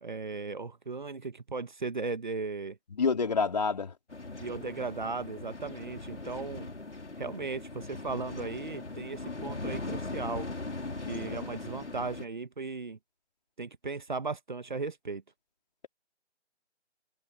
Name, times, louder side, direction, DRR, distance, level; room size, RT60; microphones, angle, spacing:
voice 1, 0.0-2.8 4.4-6.7 7.2-10.5 11.0-13.0 13.6-15.2, right 4 dB, 45° right, 1.5 m, -37 dB
voice 2, 3.0-3.9 11.2-11.4, left 5 dB, 35° left, 4.2 m, -28 dB
sound 1, 4.1-12.2, left 3 dB, 85° left, 5.7 m, -40 dB
figure-of-eight pair, 170°, 34 cm